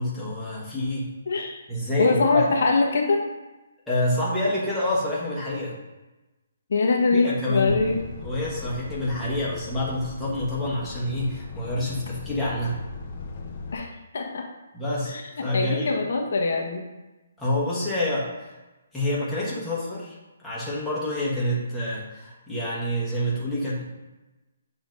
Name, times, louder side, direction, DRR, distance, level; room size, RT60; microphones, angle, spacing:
voice 1, 0.0-1.1 1.7-2.4 3.9-5.8 7.1-7.9 8.2-12.8 14.7-15.1 15.4-15.9 17.4-18.5 18.9-20.1 20.4-23.8, left 1 dB, 5° left, -8 dB, 1.4 m, -27 dB
voice 2, 1.3-1.6 2.0-3.2 6.7-8.0 13.7-14.5 15.1-15.2 15.5-16.8, left 3 dB, 60° left, 1 dB, 1.1 m, -23 dB
Truck, 7.7-13.8, left 3 dB, 40° left, 0.8 m, -38 dB
7.2 x 3.0 x 5.2 m, 1.1 s
hypercardioid pair, 165°, 0 cm